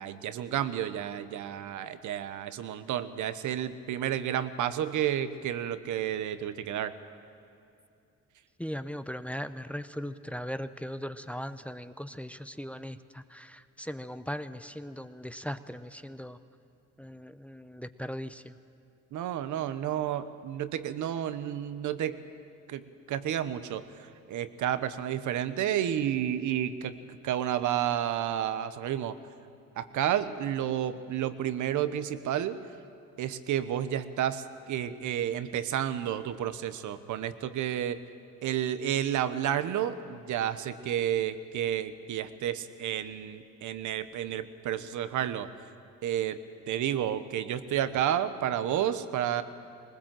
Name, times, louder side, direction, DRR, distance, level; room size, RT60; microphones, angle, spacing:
voice 1, 0.0-6.9 19.1-22.2 22.7-23.8 24.3-26.9 27.2-29.2 29.8-32.6 33.2-38.0 38.4-45.5 46.0-46.4 46.7-49.4, right 10 dB, 80° right, 12 dB, 1.0 m, -31 dB
voice 2, 8.6-16.4 17.0-18.4, equal, 5° left, 11 dB, 0.6 m, -38 dB
20.0 x 19.5 x 7.6 m, 2.5 s
cardioid pair, 90°, 30 cm